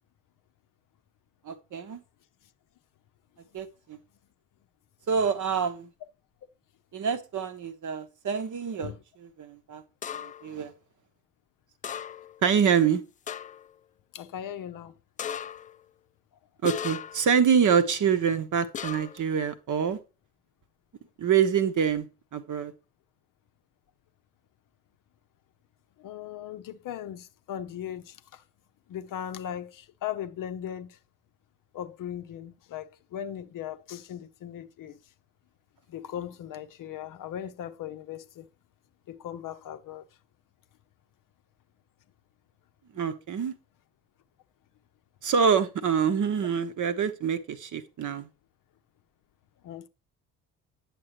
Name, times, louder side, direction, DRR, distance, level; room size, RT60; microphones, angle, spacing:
voice 1, 1.4-2.0 3.5-4.0 5.1-5.9 6.9-8.9 9.2-9.8 10.2-10.7 12.4-13.0 16.6-20.0 21.2-22.1 22.3-22.7 42.9-43.5 45.2-48.3, right 7 dB, 40° right, 1.1 m, -26 dB
sound 1, 10.0-10.5 11.8-12.4 12.8-12.9 13.3-13.7 15.2-15.8 16.6-17.3 18.7-19.3, left 8 dB, 20° left, 0.3 m, -36 dB
voice 2, 14.1-14.9 26.0-28.4 28.9-31.0 31.7-35.0 35.9-38.5 39.1-40.0 49.6-49.9, left 10 dB, 45° left, 0.7 m, -38 dB
9.5 x 6.8 x 3.1 m
figure-of-eight pair, 50°, 45 cm